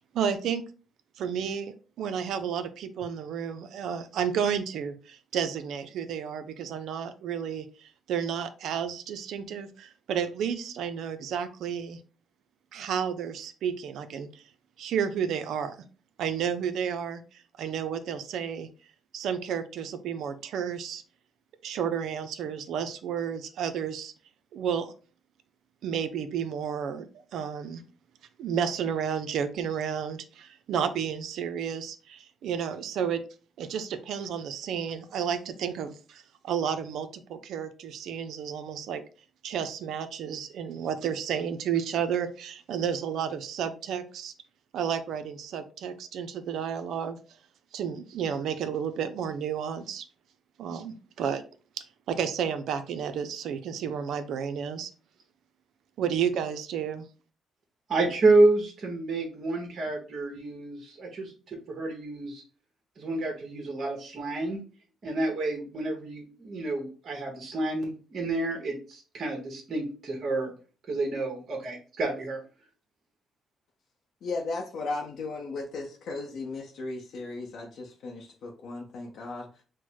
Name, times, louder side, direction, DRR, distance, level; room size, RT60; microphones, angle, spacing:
voice 1, 0.1-0.6 1.2-12.0 12.7-14.4 14.8-15.8 16.2-17.2 17.6-18.7 19.1-21.0 21.6-24.1 24.5-24.9 25.8-27.8 28.4-33.2 33.6-39.0 39.4-44.3 44.7-47.2 47.7-50.0 50.6-51.4 51.8-54.9 56.0-57.1, right 8 dB, 75° right, 9 dB, 0.5 m, -31 dB
voice 2, 57.9-62.4 63.0-64.6 65.0-70.5 70.9-72.4, right 2 dB, 50° right, 0 dB, 1.2 m, -28 dB
voice 3, 74.2-79.5, left 3 dB, 75° left, -1 dB, 0.8 m, -36 dB
4.4 x 2.1 x 4.5 m, 0.37 s
cardioid pair, 90°, 0 cm